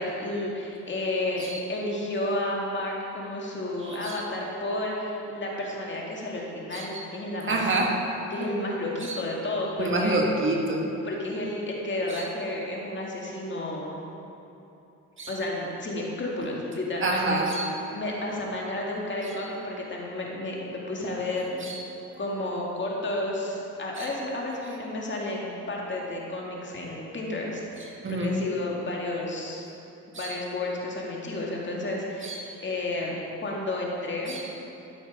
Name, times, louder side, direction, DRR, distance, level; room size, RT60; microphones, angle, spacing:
voice 1, 0.0-7.9 8.3-10.2 11.0-13.9 15.3-17.4 17.9-21.6 22.2-29.6 30.1-33.2 33.4-34.4, left 1 dB, 40° left, -2 dB, 2.1 m, -31 dB
voice 2, 3.9-4.2 6.7-7.0 7.5-7.9 9.0-9.2 9.8-10.9 12.1-12.2 15.2-15.3 17.0-17.7 21.6-21.8 22.1-22.2 24.0-24.1 28.0-28.4 30.1-30.4 32.2-32.5 34.3-34.4, right 2 dB, 40° right, 0 dB, 1.6 m, -28 dB
13.0 x 6.4 x 4.8 m, 3.0 s
cardioid pair, 90°, 30 cm